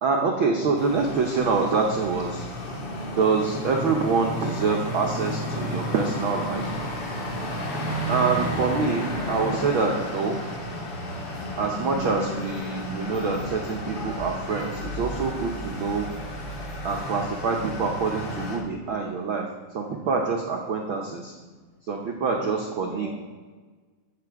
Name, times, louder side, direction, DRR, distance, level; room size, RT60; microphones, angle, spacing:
voice 1, 0.0-2.5 3.2-6.6 8.1-10.4 11.6-16.1 16.8-19.4 19.7-21.3 21.9-23.1, right 4 dB, 80° right, 1 dB, 1.1 m, -26 dB
sound 1, 0.8-18.6, equal, 40° left, 2.8 m, -32 dB
Thunder, 7.5-13.5 14.4-14.5 15.7-15.9 16.2-16.7, left 2 dB, 55° left, 4.2 m, -45 dB
voice 2, 11.8-12.2 21.7-21.8 22.8-23.1, left 3 dB, 85° left, -4 dB, 6.1 m, -46 dB
14.5 x 8.1 x 4.8 m, 1.4 s
omnidirectional pair, 3.8 m